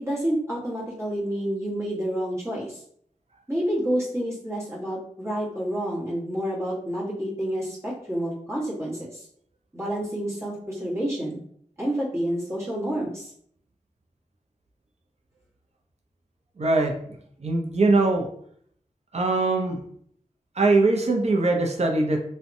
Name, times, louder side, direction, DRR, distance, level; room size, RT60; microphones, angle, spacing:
voice 1, 0.0-2.8 3.5-9.3 9.7-11.4 11.8-13.3, right 1 dB, 20° right, -6 dB, 1.2 m, -29 dB
voice 2, 16.6-16.9 17.4-18.3 19.1-19.8 20.6-22.2, right 2 dB, 55° right, 2 dB, 0.5 m, -21 dB
2.5 x 2.1 x 2.6 m, 0.64 s
wide cardioid pair, 55°, 13 cm